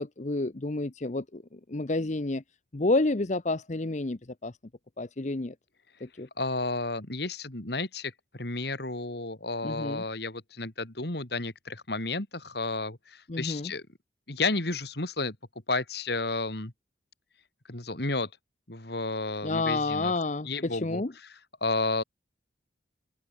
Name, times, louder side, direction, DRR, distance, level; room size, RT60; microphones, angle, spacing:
voice 1, 0.0-2.4 2.7-4.5 5.0-5.5 6.0-6.3 9.6-10.0 13.3-13.7 19.4-21.1, left 2 dB, 40° left, 0.8 m, -30 dB
voice 2, 6.4-13.8 14.3-15.4 15.7-16.7 17.7-18.3 18.7-20.1 20.4-21.0 21.6-22.0, left 3 dB, 55° left, 2.4 m, -32 dB
open air
head